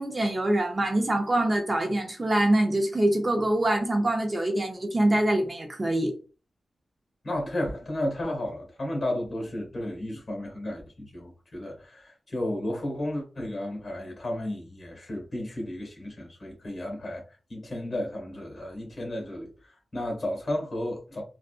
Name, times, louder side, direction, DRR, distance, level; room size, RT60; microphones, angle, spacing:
voice 1, 0.0-6.1, right 1 dB, 30° right, 0.7 m, -24 dB
voice 2, 7.2-17.2 17.5-21.2, left 1 dB, 40° left, 1.6 m, -33 dB
3.5 x 2.5 x 2.4 m
cardioid pair, 75°, 0 cm